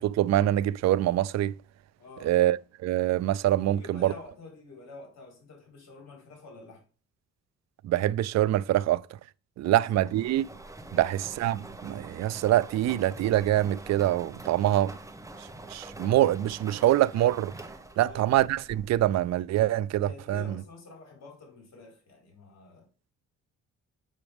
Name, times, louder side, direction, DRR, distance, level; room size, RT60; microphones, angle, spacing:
voice 1, 0.0-1.5 2.2-2.6 2.8-4.1 7.8-9.0 9.6-10.5 10.9-14.9 15.7-17.5 18.0-20.4, right 13 dB, 60° right, 0.4 m, -25 dB
voice 2, 2.0-2.3 3.5-6.8 9.6-10.2 10.9-11.2 18.0-18.3 20.0-22.9, left 3 dB, 60° left, 4.4 m, -48 dB
sound 1, 10.0-19.3, right 2 dB, 10° right, 1.1 m, -45 dB
7.3 x 5.9 x 3.5 m
cardioid pair, 90°, 30 cm